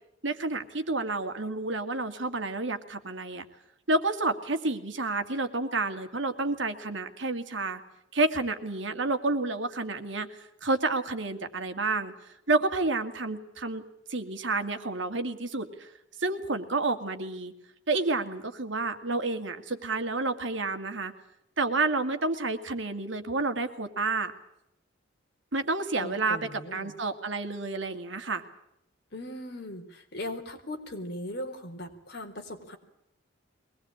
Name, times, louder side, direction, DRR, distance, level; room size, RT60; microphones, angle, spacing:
voice 1, 0.2-3.4 3.9-7.8 8.1-12.1 12.5-13.8 14.1-15.9 16.2-17.5 17.9-21.1 21.6-24.3 25.5-28.4, right 3 dB, 70° right, 7 dB, 2.2 m, -30 dB
voice 2, 26.0-27.0 29.1-32.8, left 1 dB, 55° left, 3 dB, 4.1 m, -39 dB
23.5 x 19.5 x 8.7 m, 0.82 s
head